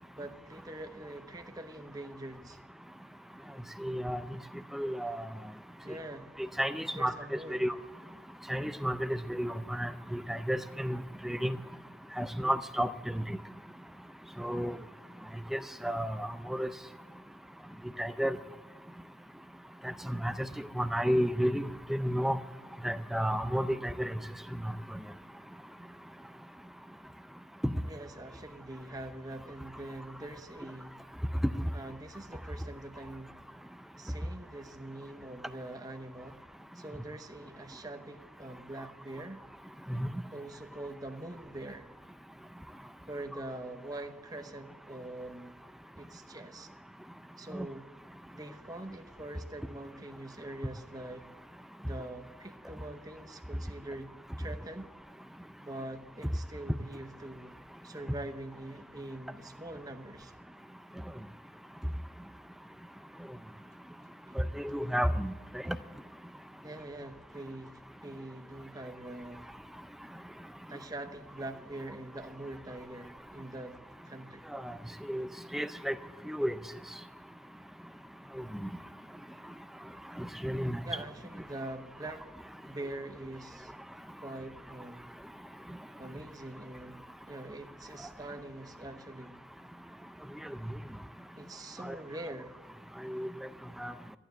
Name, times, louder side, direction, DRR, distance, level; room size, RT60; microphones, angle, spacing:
voice 1, 0.1-2.6 5.8-6.3 6.9-7.7 27.8-31.0 31.7-33.4 34.0-36.4 36.7-39.4 40.3-41.9 43.1-45.5 46.0-46.7 47.4-47.9 48.3-51.3 51.8-54.1 54.4-54.9 55.6-57.6 57.8-60.3 64.3-64.4 66.6-69.5 70.7-73.8 74.0-74.4 80.8-82.3 82.6-83.7 84.2-85.1 86.0-89.4 91.3-92.6, right 1 dB, 20° right, 0.8 m, -44 dB
voice 2, 3.8-4.2 4.7-5.2 6.6-7.1 7.5-7.7 8.5-11.6 12.2-13.4 14.4-14.8 15.5-16.7 18.0-18.4 19.8-20.5 20.8-22.4 22.8-24.1 27.6-27.7 39.9-40.1 47.5-47.7 64.4-65.3 65.7-65.8 74.5-74.7 75.1-75.3 75.5-76.0 76.3-76.5 78.6-78.7 80.2-80.8 91.8-92.0 93.0-93.3 93.8-93.9, equal, ahead, 0.4 m, -32 dB
14.0 x 9.3 x 7.7 m
head